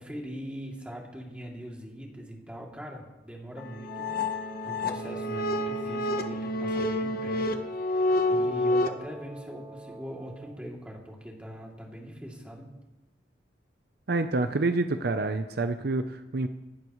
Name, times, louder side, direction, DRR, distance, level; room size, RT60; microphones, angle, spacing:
voice 1, 0.0-12.7, equal, 5° right, -2 dB, 2.8 m, -42 dB
sound 1, 3.6-8.9, left 1 dB, 55° left, 1.1 m, -28 dB
Wind instrument woodwind instrument, 3.9-10.6, right 2 dB, 25° right, 2.2 m, -47 dB
voice 2, 14.1-16.5, right 2 dB, 60° right, 8 dB, 0.7 m, -27 dB
26.0 x 12.0 x 3.2 m, 1.1 s
head